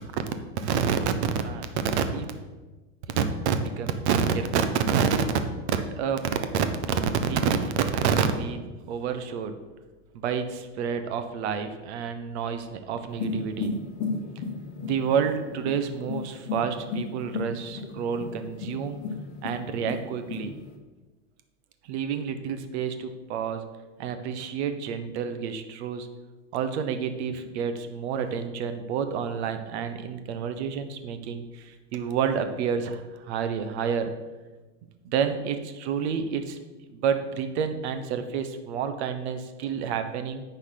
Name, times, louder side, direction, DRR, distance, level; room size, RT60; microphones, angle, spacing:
voice 1, 0.6-2.3 3.2-5.2 5.7-6.2 6.5-6.7 7.2-9.5 10.1-13.8 14.8-19.0 19.4-20.5 21.8-23.6 24.0-26.1 26.5-34.1 35.0-36.6 36.9-40.4, right 7 dB, 65° right, 8 dB, 1.1 m, -28 dB
sound 1, 13.1-20.8, left 4 dB, 45° left, 1.2 m, -35 dB
10.0 x 4.4 x 5.8 m, 1.2 s
supercardioid pair, 150°, 37 cm